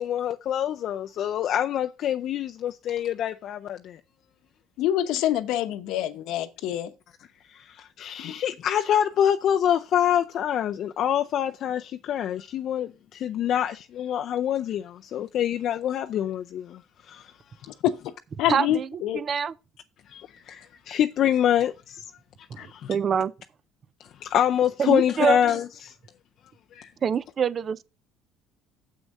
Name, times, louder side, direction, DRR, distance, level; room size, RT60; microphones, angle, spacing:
voice 1, 0.0-4.0 7.5-17.3 20.1-22.0 22.4-22.9 24.0-25.9 26.7-26.9, left 10 dB, 55° left, 0.4 m, -26 dB
voice 2, 4.8-6.9 8.2-8.3 17.8-18.0 18.4-19.2 22.6-22.7, left 12 dB, 70° left, 0.9 m, -26 dB
voice 3, 18.5-19.5 22.5-23.3 24.8-25.4 27.0-27.8, right 7 dB, 35° right, 0.5 m, -25 dB
7.5 x 6.2 x 5.3 m
cardioid pair, 120°, 0 cm